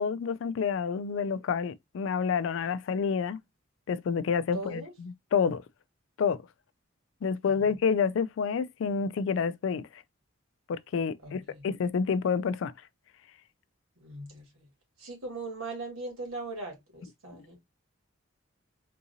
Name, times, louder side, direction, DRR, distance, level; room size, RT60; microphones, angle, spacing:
voice 1, 0.0-3.4 3.9-5.6 6.2-6.4 7.2-10.0 10.7-12.7 17.3-17.4, left 6 dB, 70° left, 0.3 m, -29 dB
voice 2, 4.5-4.9 7.4-7.8 11.2-11.7 14.0-14.7 15.0-17.6, right 2 dB, 90° right, 2.1 m, -40 dB
3.6 x 2.8 x 2.6 m
head